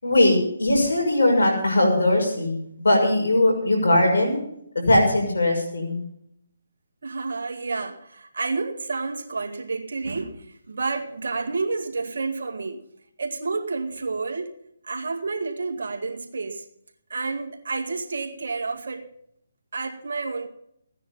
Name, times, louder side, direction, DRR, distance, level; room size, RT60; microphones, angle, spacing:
voice 1, 0.0-4.4 4.7-6.0, left 1 dB, 80° left, 2 dB, 6.0 m, -20 dB
voice 2, 7.0-12.8 13.2-14.5 14.8-16.7 17.1-19.1 19.7-20.5, right 4 dB, 70° right, 3 dB, 2.1 m, -30 dB
16.0 x 9.9 x 5.6 m, 0.73 s
hypercardioid pair, 155°, 0 cm